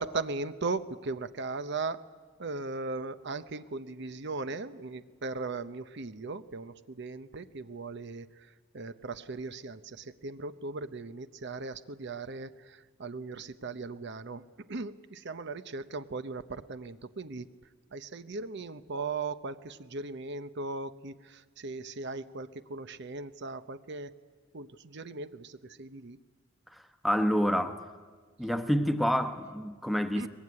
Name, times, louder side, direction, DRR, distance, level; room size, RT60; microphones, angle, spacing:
voice 1, 0.0-2.0 2.4-17.5 17.9-24.1 24.5-26.2 30.2-30.3, right 3 dB, 60° right, 0.8 m, -38 dB
voice 2, 26.7-27.8 28.4-30.3, equal, ahead, 1.1 m, -28 dB
23.0 x 20.5 x 9.6 m
head